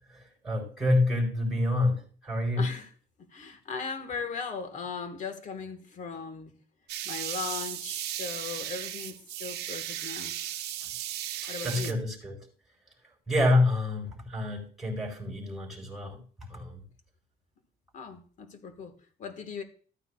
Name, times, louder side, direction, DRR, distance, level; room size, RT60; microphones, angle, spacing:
voice 1, 0.4-2.7 11.6-12.3 13.3-16.2 16.5-16.8, left 2 dB, ahead, 4.5 m, -27 dB
voice 2, 2.6-2.9 3.3-6.5 7.0-10.4 11.5-12.0 17.9-18.9 19.2-19.6, left 5 dB, 45° left, 1.5 m, -38 dB
sound 1, 6.9-11.9, right 12 dB, 75° right, 0.8 m, -36 dB
14.5 x 9.2 x 2.3 m
cardioid pair, 110°, 17 cm